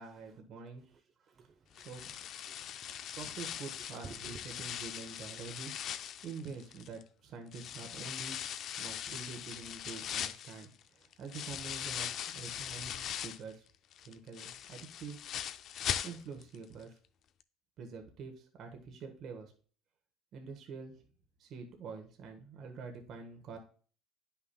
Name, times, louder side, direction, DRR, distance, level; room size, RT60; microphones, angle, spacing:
voice 1, 0.0-0.8 1.7-2.2 3.1-8.4 8.8-13.7 14.0-15.2 16.0-17.0 17.8-19.5 20.3-21.0 21.4-23.6, right 5 dB, 55° right, 1.2 m, -46 dB
voice 2, 0.9-1.9 2.5-3.2 4.0-4.4, right 5 dB, 40° right, 0.7 m, -53 dB
sound 1, 1.8-7.0 7.5-13.5 13.9-16.6 16.8-16.9 17.4-17.5, left 10 dB, 55° left, 0.4 m, -40 dB
9.5 x 5.7 x 2.2 m
supercardioid pair, 100°, 0 cm